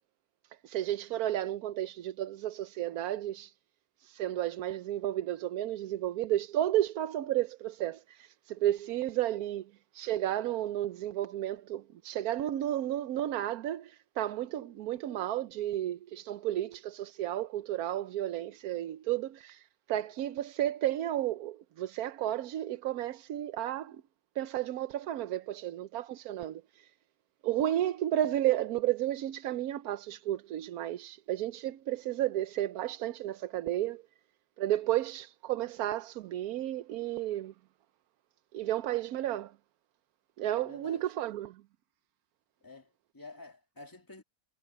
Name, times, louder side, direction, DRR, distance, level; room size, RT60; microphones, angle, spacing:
voice 1, 0.6-3.5 4.0-24.0 24.4-26.9 27.4-34.0 34.6-37.5 38.5-39.5 40.4-41.6, right 13 dB, 90° right, 1.2 m, -32 dB
voice 2, 40.6-41.1 42.6-44.2, left 3 dB, 15° left, 2.5 m, -50 dB
omnidirectional pair, 1.5 m